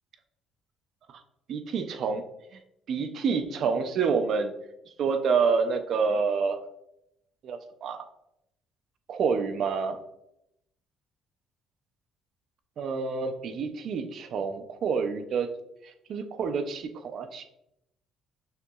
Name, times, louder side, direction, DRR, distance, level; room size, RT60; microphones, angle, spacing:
voice 1, 1.5-2.2 2.5-2.6 2.9-4.5 5.0-6.6 7.4-8.1 9.1-10.0 12.8-15.5 15.8-17.5, right 5 dB, 45° right, 8 dB, 0.4 m, -28 dB
6.4 x 2.9 x 2.3 m, 0.81 s
cardioid pair, 170°, 0 cm